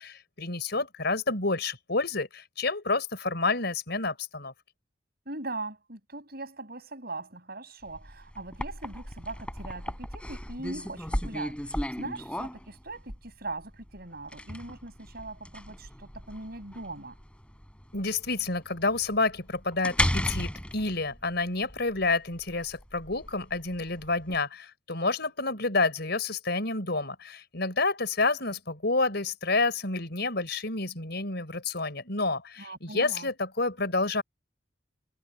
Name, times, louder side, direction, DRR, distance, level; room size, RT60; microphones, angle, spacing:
voice 1, 0.0-4.5 17.9-34.2, left 3 dB, 60° left, 5.5 m, -29 dB
voice 2, 5.3-17.2 32.6-33.3, right 2 dB, 55° right, 7.8 m, -40 dB
sound 1, 7.9-24.4, left 1 dB, 5° left, 7.8 m, -35 dB
head